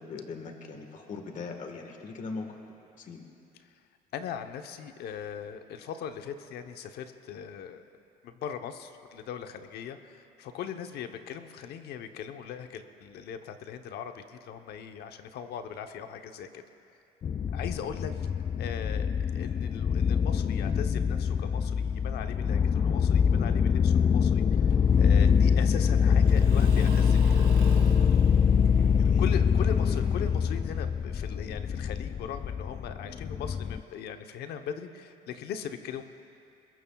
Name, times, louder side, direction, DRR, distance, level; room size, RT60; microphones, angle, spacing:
voice 1, 0.0-2.6 3.0-3.2 29.0-29.3 29.7-30.0, left 4 dB, 50° left, 4 dB, 1.5 m, -40 dB
voice 2, 4.1-7.8 8.2-16.6 17.5-18.3 18.6-27.4 29.0-36.0, left 8 dB, 70° left, 7 dB, 0.9 m, -39 dB
sound 1, 17.2-33.8, left 7 dB, 30° left, 0.3 m, -24 dB
Engine / Mechanisms / Drill, 24.7-31.4, right 4 dB, 65° right, 2.6 m, -49 dB
22.5 x 21.0 x 2.4 m, 2.6 s
cardioid pair, 110°, 17 cm